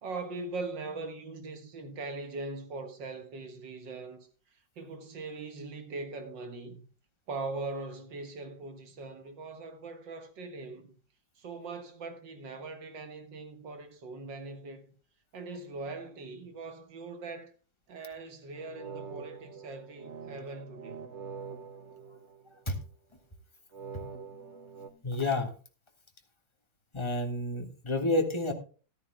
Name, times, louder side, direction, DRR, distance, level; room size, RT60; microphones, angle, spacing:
voice 1, 0.0-4.3 4.8-6.8 7.3-10.9 11.4-14.9 15.3-17.5 17.9-21.0, right 3 dB, 75° right, 2.1 m, -41 dB
sound 1, 18.5-22.8 23.7-24.9, right 6 dB, 45° right, 1.1 m, -45 dB
voice 2, 25.0-25.5 26.9-28.5, left 2 dB, 15° left, 1.6 m, -29 dB
13.5 x 13.5 x 2.2 m
omnidirectional pair, 2.0 m